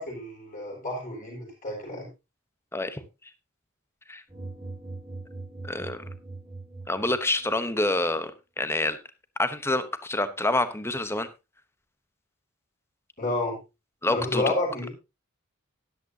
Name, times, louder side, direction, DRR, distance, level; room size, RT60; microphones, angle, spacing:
voice 1, 0.0-2.1 13.2-13.6 14.1-14.9, left 2 dB, 40° left, -2 dB, 6.4 m, -30 dB
voice 2, 2.7-3.0 4.1-4.2 5.6-6.0 6.9-8.3 8.6-9.0 9.4-11.3 14.0-14.4, left 2 dB, 10° left, 11 dB, 0.9 m, -27 dB
sound 1, 4.3-7.5, right 2 dB, 15° right, 2.2 m, -41 dB
13.0 x 11.0 x 2.8 m, 0.26 s
head